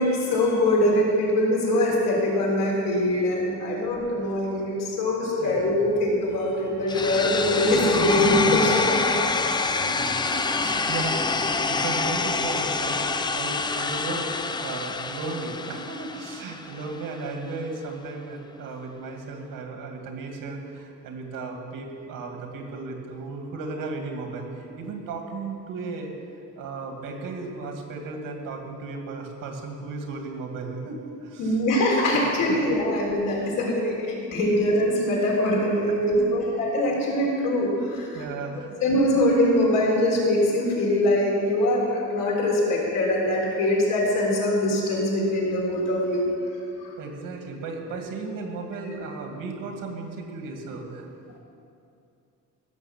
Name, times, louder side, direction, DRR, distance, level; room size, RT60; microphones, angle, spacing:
voice 1, 0.0-9.9 31.4-38.2 38.8-46.3 46.8-46.9, left 1 dB, 90° left, -3 dB, 3.7 m, -23 dB
sound 1, 6.9-16.9, left 4 dB, 15° left, 0.3 m, -26 dB
voice 2, 8.0-9.1 9.8-13.0 13.3-26.1 26.6-31.6 32.1-32.2 32.5-32.6 33.5-33.9 34.5-34.6 35.9-36.5 38.1-38.8 47.0-51.4, right 3 dB, 85° right, 2 dB, 2.2 m, -35 dB
16.0 x 6.7 x 7.3 m, 2.5 s
cardioid pair, 170°, 32 cm